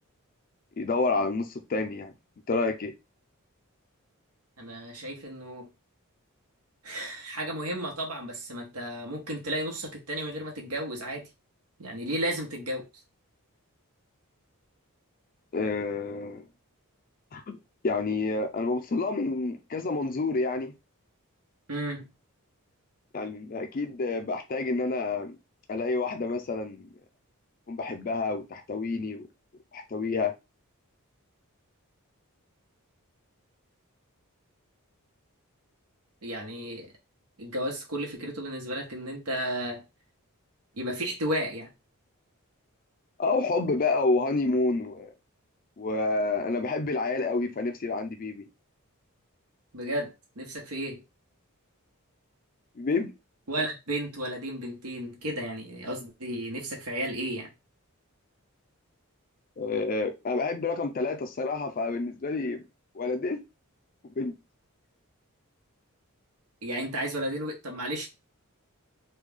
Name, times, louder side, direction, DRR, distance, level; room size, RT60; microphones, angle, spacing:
voice 1, 0.8-2.1 2.5-2.9 15.5-16.4 17.3-17.6 17.8-20.7 23.1-25.4 25.7-26.9 27.7-29.3 29.7-30.3 43.2-45.1 45.8-48.5 52.8-53.1 59.6-62.6 62.9-63.4 64.0-64.4, left 3 dB, 40° left, 0.4 m, -29 dB
voice 2, 4.6-5.7 6.8-11.3 11.8-12.8 21.7-22.1 36.2-36.9 37.4-39.8 40.7-41.7 49.7-51.0 53.5-57.5 66.6-68.1, right 1 dB, 85° right, 1.1 m, -33 dB
3.2 x 2.3 x 3.5 m
head